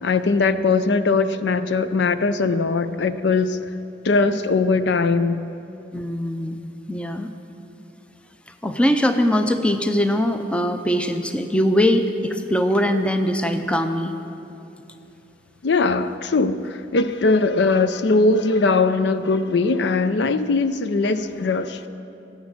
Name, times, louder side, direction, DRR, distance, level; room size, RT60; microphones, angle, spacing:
voice 1, 0.0-3.7 4.0-5.4 15.6-21.8, left 3 dB, 65° left, 0.5 m, -20 dB
voice 2, 5.9-6.6 6.9-7.3 8.6-14.1, equal, 5° left, 0.5 m, -21 dB
17.5 x 7.3 x 7.5 m
head